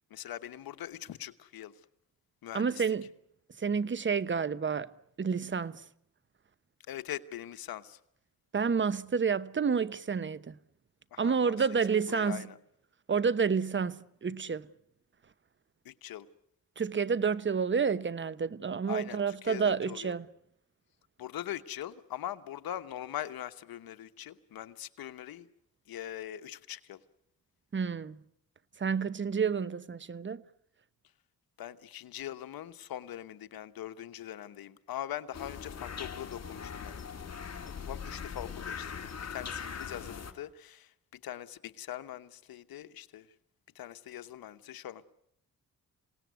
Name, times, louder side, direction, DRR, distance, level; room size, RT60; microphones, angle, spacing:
voice 1, 0.1-1.7 2.4-2.8 6.9-8.0 11.1-11.5 11.9-12.6 15.8-16.3 18.9-20.2 21.2-25.5 25.9-27.0 31.6-37.0 37.6-43.3 43.7-45.0, left 12 dB, 85° left, 1.2 m, -42 dB
voice 2, 2.5-3.0 3.6-4.9 5.2-5.8 8.5-10.6 11.2-12.5 13.1-14.7 16.8-20.3 27.7-28.2 28.8-30.4, right 6 dB, 35° right, 0.9 m, -29 dB
sound 1, 35.3-40.3, left 6 dB, 45° left, 2.3 m, -41 dB
27.5 x 18.5 x 9.4 m
cardioid pair, 80°, 35 cm